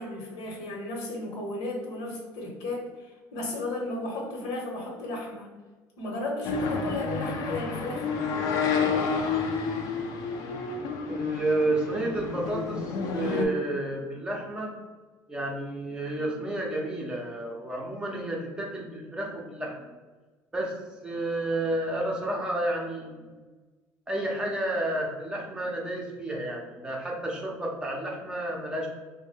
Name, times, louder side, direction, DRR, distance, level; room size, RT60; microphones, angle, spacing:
voice 1, 0.0-5.5 6.0-8.1, left 1 dB, 80° left, 0 dB, 1.0 m, -34 dB
sound 1, 6.4-13.4, left 5 dB, 65° left, 0.5 m, -30 dB
voice 2, 11.1-14.7 15.3-19.9 20.5-20.7 21.0-23.4 24.1-28.9, right 1 dB, 15° right, -2 dB, 0.6 m, -31 dB
3.6 x 2.1 x 3.3 m, 1.3 s
cardioid pair, 135°, 7 cm